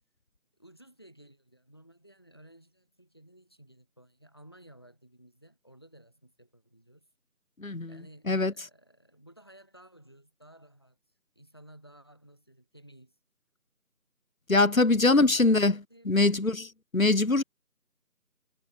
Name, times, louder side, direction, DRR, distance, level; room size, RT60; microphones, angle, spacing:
voice 1, 0.6-7.1 7.8-11.0 11.4-13.2 15.0-15.6 15.9-16.4, right 1 dB, 15° left, 7.6 m, -55 dB
voice 2, 7.6-7.9 8.3-8.5 14.5-15.7 16.1-16.6 16.9-17.4, left 2 dB, 60° left, 1.2 m, -22 dB
figure-of-eight pair, 180°, 45 cm